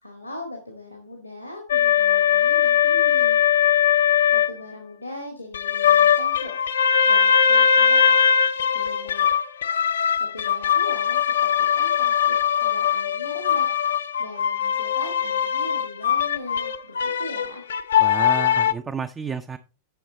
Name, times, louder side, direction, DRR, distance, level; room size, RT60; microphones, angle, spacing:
voice 1, 0.0-3.4 4.3-6.6 7.1-8.2 8.7-9.3 10.2-12.3 12.6-13.7 14.2-17.7, left 1 dB, 85° left, 3 dB, 1.6 m, -39 dB
sound 1, 1.7-4.5 5.5-18.7, left 8 dB, 65° left, 0.6 m, -20 dB
voice 2, 18.0-19.6, right 5 dB, 20° right, 9 dB, 0.5 m, -31 dB
10.5 x 6.2 x 3.9 m, 0.33 s
figure-of-eight pair, 90°, 0 cm